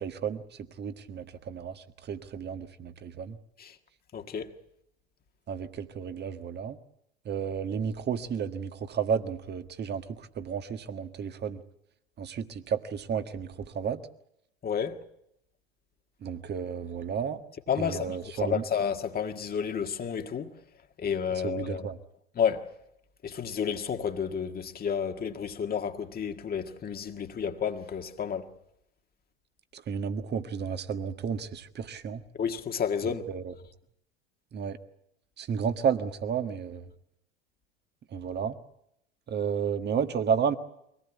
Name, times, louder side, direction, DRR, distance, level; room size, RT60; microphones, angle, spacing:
voice 1, 0.0-3.4 5.5-6.8 7.2-11.6 12.2-14.0 16.2-17.4 17.8-18.6 21.3-22.0 29.7-32.2 33.3-33.5 34.5-34.8 35.4-36.8 38.1-38.6 39.3-40.5, right 7 dB, 30° right, 1.6 m, -32 dB
voice 2, 4.1-4.5 14.6-15.0 17.7-20.5 21.0-21.9 22.4-22.6 23.2-28.5 32.4-33.3, left 7 dB, 30° left, 1.7 m, -31 dB
23.5 x 18.5 x 8.3 m
hypercardioid pair, 80°, 32 cm